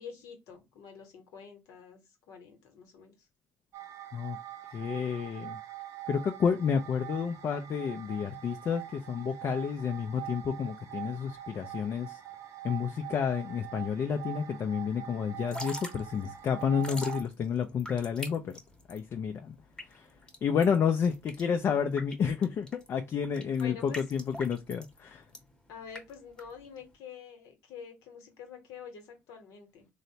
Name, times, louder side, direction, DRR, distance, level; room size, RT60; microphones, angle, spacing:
voice 1, 0.0-3.1 23.6-24.0 25.7-29.9, left 6 dB, 75° left, 0.9 m, -47 dB
sound 1, 3.7-17.2, right 14 dB, 60° right, 0.4 m, -44 dB
voice 2, 4.7-5.6 6.1-12.2 12.6-18.5 18.9-19.6 19.9-20.1 20.4-25.2, left 7 dB, 50° left, 0.4 m, -30 dB
Drip / Trickle dribble, 15.3-26.9, left 1 dB, 15° left, 0.9 m, -45 dB
3.1 x 2.0 x 2.7 m
hypercardioid pair, 60°, 6 cm